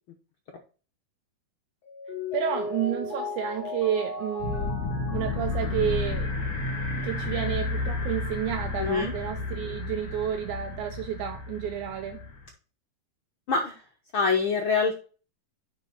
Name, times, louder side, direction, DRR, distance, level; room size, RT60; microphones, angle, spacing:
Mallet percussion, 1.8-6.8, left 4 dB, 45° left, 2.3 m, -37 dB
voice 1, 2.3-4.8 5.1-6.3 7.0-12.3, right 10 dB, 80° right, 2.0 m, -30 dB
sound 1, 4.4-12.5, left 3 dB, 65° left, 3.8 m, -32 dB
voice 2, 8.8-9.1 13.5-13.7 14.1-15.0, left 4 dB, 80° left, 1.1 m, -25 dB
8.0 x 5.5 x 4.0 m
omnidirectional pair, 3.7 m